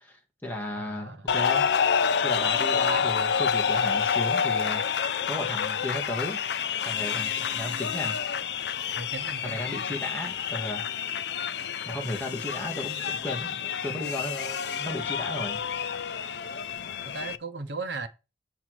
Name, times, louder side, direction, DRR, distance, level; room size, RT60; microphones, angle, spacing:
voice 1, 0.0-1.6 2.2-5.0 5.3-6.4 6.8-8.2 9.4-10.9 11.9-15.6, left 1 dB, 10° left, 1.9 m, -35 dB
voice 2, 0.8-1.3 9.0-10.0 17.1-18.1, right 4 dB, 85° right, 1.1 m, -37 dB
sound 1, 1.3-17.4, left 7 dB, 75° left, 0.5 m, -28 dB
7.3 x 5.9 x 4.8 m
head